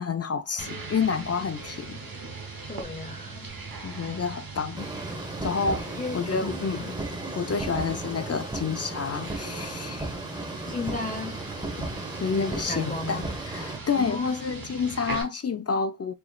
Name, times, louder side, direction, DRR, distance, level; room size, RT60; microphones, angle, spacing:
voice 1, 0.0-2.0 2.5-2.7 3.8-4.9 5.4-7.0 7.3-10.1 12.2-16.1, left 5 dB, 45° left, 0.4 m, -29 dB
sound 1, 0.6-15.2, right 4 dB, 85° right, 0.9 m, -40 dB
voice 2, 2.7-3.5 6.0-6.6 7.7-8.0 10.7-11.3 12.7-13.2 14.0-14.5, left 3 dB, 25° left, 1.0 m, -34 dB
sound 2, 4.8-13.8, right 2 dB, 15° right, 0.9 m, -35 dB
4.4 x 2.9 x 2.3 m
wide cardioid pair, 70°, 34 cm